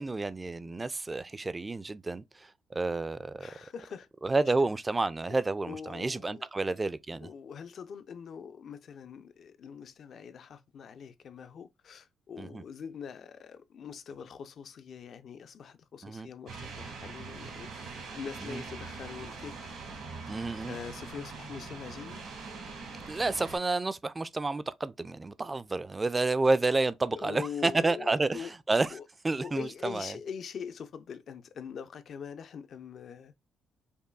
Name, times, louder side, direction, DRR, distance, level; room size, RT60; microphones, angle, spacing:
voice 1, 0.0-3.6 4.2-7.3 12.4-12.6 16.0-16.3 18.4-18.6 20.3-20.8 23.1-29.0 29.2-30.2, right 3 dB, 20° right, 0.3 m, -30 dB
voice 2, 3.4-4.1 5.3-5.4 5.7-6.5 7.2-19.5 20.6-22.2 27.1-28.5 28.9-29.1 29.4-33.3, left 7 dB, 60° left, 0.4 m, -43 dB
sound 1, 16.5-23.6, right 4 dB, 85° right, 1.7 m, -43 dB
5.4 x 2.2 x 2.2 m
cardioid pair, 90°, 0 cm